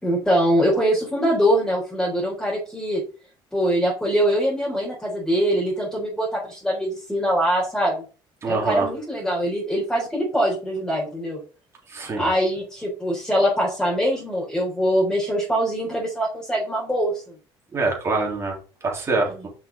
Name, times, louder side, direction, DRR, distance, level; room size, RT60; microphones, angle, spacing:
voice 1, 0.0-3.0 3.5-8.0 8.4-11.4 12.2-17.3 19.3-19.5, equal, 5° left, -6 dB, 3.7 m, -23 dB
voice 2, 8.4-8.9 11.9-12.3 17.7-19.5, right 3 dB, 30° right, 0 dB, 3.4 m, -25 dB
5.9 x 5.9 x 5.1 m, 0.36 s
cardioid pair, 135°, 10 cm